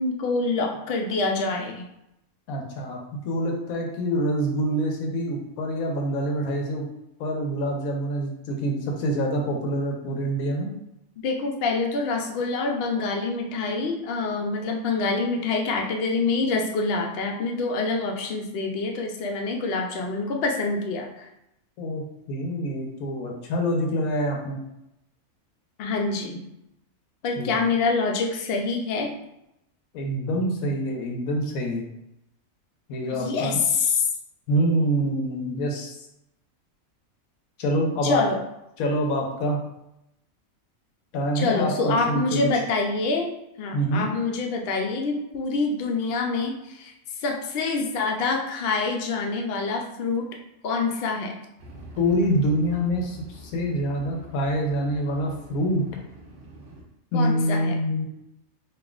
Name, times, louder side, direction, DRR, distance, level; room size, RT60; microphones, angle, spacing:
voice 1, 0.0-1.9 11.2-21.3 25.8-26.4 27.2-29.1 33.1-34.1 38.0-38.4 41.3-43.3 43.6-46.9 47.2-50.3 50.6-51.3 57.1-57.8, left 3 dB, 60° left, 2 dB, 0.7 m, -26 dB
voice 2, 2.5-3.0 3.2-6.8 7.2-10.7 21.8-24.6 27.4-27.5 29.9-31.9 32.9-33.6 34.5-36.0 37.6-38.2 38.8-39.6 41.1-42.5 43.7-44.1 52.0-55.9 57.1-58.0, equal, 85° left, 0 dB, 1.2 m, -26 dB
sound 1, 51.6-56.8, right 1 dB, 50° right, 1.2 m, -45 dB
5.4 x 2.4 x 2.4 m, 0.84 s
omnidirectional pair, 1.4 m